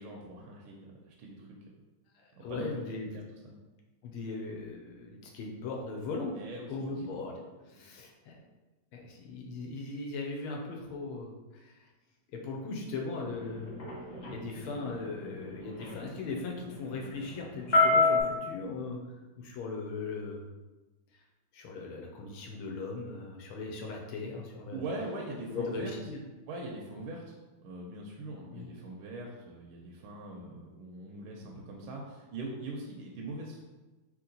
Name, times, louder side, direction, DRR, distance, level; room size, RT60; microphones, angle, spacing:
voice 1, 0.0-1.6 2.4-3.6 6.4-6.9 24.7-25.9 26.5-27.3 27.6-33.6, right 2 dB, 80° right, -1 dB, 1.4 m, -42 dB
voice 2, 2.2-3.1 4.0-7.3 7.7-8.4 8.9-11.7 12.3-13.7 14.3-19.0 19.4-20.4 21.5-24.8 25.5-26.2 28.5-28.7, left 3 dB, 85° left, 0 dB, 1.6 m, -38 dB
sound 1, 13.2-18.2, left 3 dB, 45° left, 0.7 m, -29 dB
3.8 x 3.0 x 3.9 m, 1.2 s
omnidirectional pair, 2.3 m